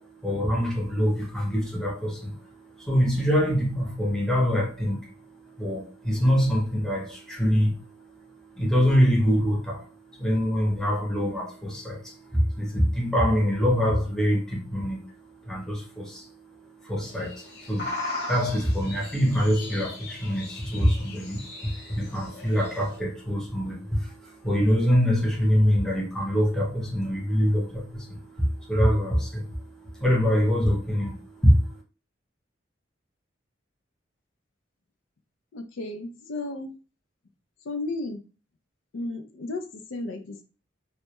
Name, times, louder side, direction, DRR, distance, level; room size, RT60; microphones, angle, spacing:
voice 1, 0.0-31.8, equal, 5° left, 0.6 m, -25 dB
sound 1, 17.0-23.0, left 2 dB, 55° left, 0.7 m, -38 dB
voice 2, 35.5-36.7 37.6-38.2 38.9-40.4, left 2 dB, 85° left, 0.4 m, -34 dB
2.2 x 2.1 x 2.8 m
head